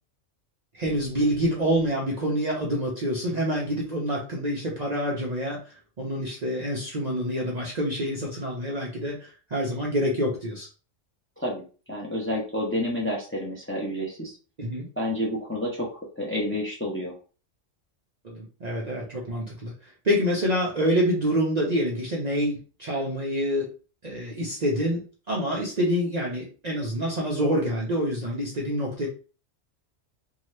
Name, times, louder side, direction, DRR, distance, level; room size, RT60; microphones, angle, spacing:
voice 1, 0.7-10.7 14.6-14.9 18.2-19.7 20.0-23.7 24.0-29.1, equal, 45° right, -3 dB, 0.6 m, -27 dB
voice 2, 11.9-14.4 15.0-17.1, left 1 dB, 15° left, -3 dB, 0.5 m, -29 dB
2.7 x 2.3 x 3.1 m, 0.36 s
omnidirectional pair, 1.3 m